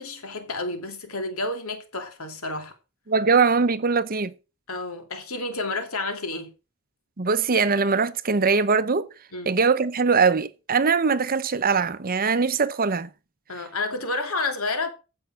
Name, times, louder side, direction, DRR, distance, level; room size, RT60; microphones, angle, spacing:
voice 1, 0.0-2.7 4.7-6.5 9.3-9.5 13.5-14.9, left 2 dB, 70° left, 2.8 m, -30 dB
voice 2, 3.1-4.3 7.2-9.1 9.5-13.1, right 5 dB, 40° right, 0.8 m, -21 dB
15.0 x 5.6 x 6.3 m
head